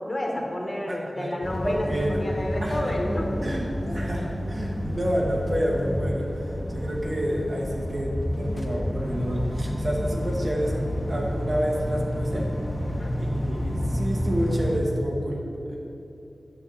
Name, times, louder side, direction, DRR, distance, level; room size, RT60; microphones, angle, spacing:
voice 1, 0.1-3.3 12.9-13.1, left 1 dB, 35° left, 0 dB, 1.4 m, -30 dB
voice 2, 0.9-1.4 1.6-2.3 2.6-2.8 3.4-12.5 13.2-15.8, equal, 50° right, -2 dB, 1.3 m, -29 dB
sound 1, 1.4-14.8, equal, 15° left, 1.0 m, -29 dB
9.3 x 6.3 x 4.1 m, 2.9 s
wide cardioid pair, 60°, 0 cm